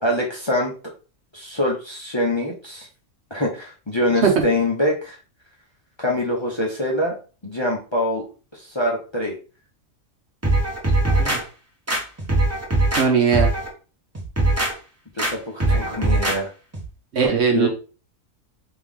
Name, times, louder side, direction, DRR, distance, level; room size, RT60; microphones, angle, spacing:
voice 1, 0.0-0.7 1.3-2.9 3.3-5.1 6.0-7.1 7.4-8.2 8.5-9.4 15.1-16.5 17.5-17.7, left 1 dB, 25° left, -2 dB, 0.7 m, -24 dB
sound 1, 10.4-11.4 11.9-13.1 13.3-13.7 14.2-14.7 15.2-15.3 15.6-16.4 16.7-16.9, right 2 dB, 15° right, 0.8 m, -20 dB
voice 2, 13.0-13.5 17.1-17.7, right 6 dB, 60° right, 2 dB, 1.0 m, -18 dB
3.7 x 3.0 x 3.5 m, 0.35 s
omnidirectional pair, 1.4 m